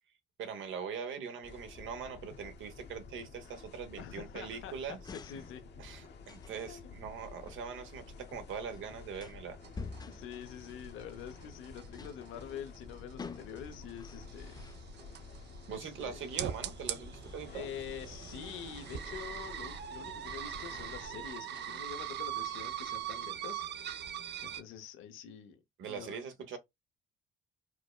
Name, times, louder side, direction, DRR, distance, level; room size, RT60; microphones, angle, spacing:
voice 1, 0.4-5.0 5.8-9.6 15.7-17.7 25.8-26.6, right 6 dB, 75° right, 0.9 m, -42 dB
sound 1, 1.4-21.3, left 4 dB, 60° left, 0.8 m, -51 dB
voice 2, 4.0-4.7 5.1-5.6 6.6-7.0 10.1-14.6 15.7-16.2 17.5-23.6 24.4-25.6 25.9-26.2 26.5-26.6, left 8 dB, 90° left, 0.7 m, -46 dB
sound 2, 4.7-22.9, left 4 dB, 20° left, 0.3 m, -53 dB
sound 3, 9.6-24.6, right 10 dB, 60° right, 0.5 m, -42 dB
4.6 x 2.2 x 2.2 m
cardioid pair, 90°, 20 cm